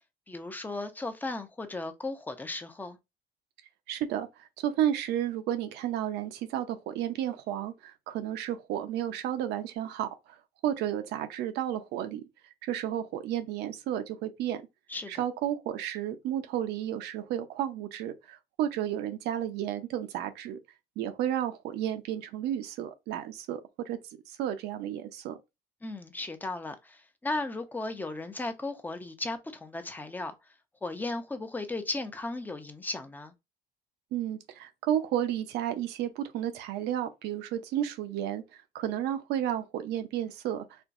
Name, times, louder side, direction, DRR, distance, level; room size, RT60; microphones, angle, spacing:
voice 1, 0.3-3.0 14.9-15.2 25.8-30.3 30.8-33.3, left 2 dB, 10° left, 0.6 m, -36 dB
voice 2, 3.9-10.1 10.6-12.2 12.6-14.6 15.1-20.6 21.0-24.0 24.3-25.4 34.1-40.8, right 11 dB, 85° right, 0.7 m, -32 dB
4.4 x 2.2 x 2.6 m
cardioid pair, 110°, 17 cm